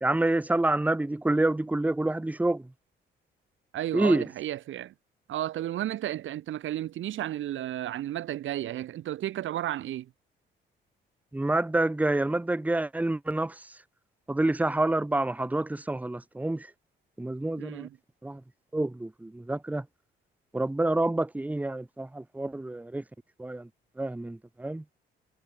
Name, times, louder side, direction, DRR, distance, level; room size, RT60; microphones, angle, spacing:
voice 1, 0.0-2.7 3.9-4.2 11.3-13.8 14.3-16.7 17.2-17.9 18.2-18.4 18.7-19.9 20.5-23.0 23.4-23.7 24.0-24.8, right 2 dB, 5° right, 1.0 m, -28 dB
voice 2, 3.7-4.9 5.3-10.1 17.6-18.0, right 13 dB, 75° right, 3.1 m, -33 dB
cardioid pair, 90°, 20 cm